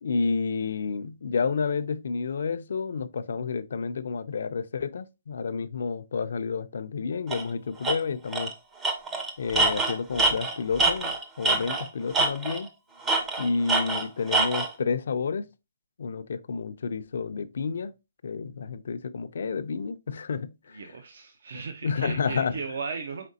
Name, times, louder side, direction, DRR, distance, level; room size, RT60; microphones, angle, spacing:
voice 1, 0.0-8.5 9.4-12.7 13.4-15.5 16.0-17.9 18.2-20.9 21.8-22.6, left 5 dB, 70° left, 0.4 m, -30 dB
Tools, 7.3-7.4 7.8-8.0 8.3-8.5 8.8-11.9 12.1-12.7 13.1-14.7, right 3 dB, 10° right, 0.5 m, -25 dB
voice 2, 20.7-23.3, right 5 dB, 65° right, 0.6 m, -36 dB
5.0 x 3.6 x 2.7 m
hypercardioid pair, 165°, 0 cm